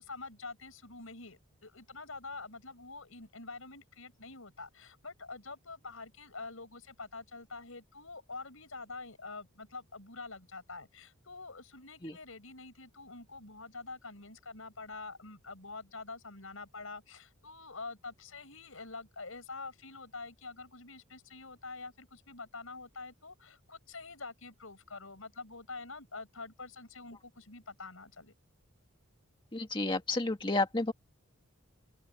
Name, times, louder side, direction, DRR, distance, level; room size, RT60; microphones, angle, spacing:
voice 1, 0.0-28.3, left 3 dB, 80° left, 5.6 m, -46 dB
voice 2, 29.5-30.9, left 2 dB, 25° left, 2.1 m, -31 dB
open air
head